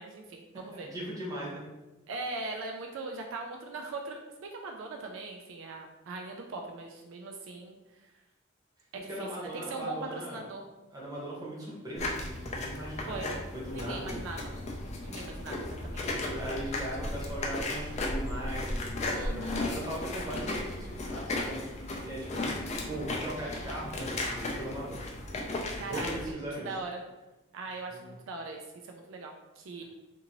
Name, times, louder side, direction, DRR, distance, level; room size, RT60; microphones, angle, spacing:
voice 1, 0.0-0.9 2.1-8.1 8.9-10.7 13.1-13.3 13.7-14.5 15.0-16.0 19.1-19.7 25.8-27.0 27.5-29.8, right 3 dB, 70° right, 2 dB, 0.3 m, -40 dB
voice 2, 0.7-1.6 9.1-10.4 10.9-14.3 16.0-25.0 25.3-26.7 27.9-28.1, right 1 dB, 20° right, -5 dB, 0.8 m, -39 dB
sound 1, 12.0-26.3, left 2 dB, 35° left, 0.4 m, -35 dB
2.6 x 2.6 x 2.8 m, 1.1 s
head